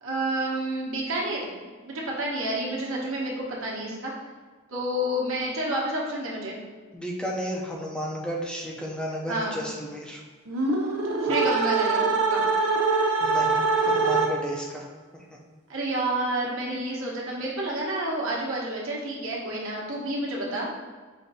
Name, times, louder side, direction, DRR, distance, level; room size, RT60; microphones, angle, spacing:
voice 1, 0.0-1.5 1.8-4.1 4.7-6.6 9.3-9.6 11.2-12.0 12.3-12.5 15.7-20.7, right 1 dB, 70° right, -4 dB, 1.1 m, -29 dB
voice 2, 6.9-10.2 13.2-14.9 15.1-15.2, equal, 5° left, -2 dB, 0.5 m, -33 dB
sound 1, 10.5-14.6, right 3 dB, 90° right, 0.6 m, -23 dB
5.2 x 2.6 x 4.0 m, 1.4 s
head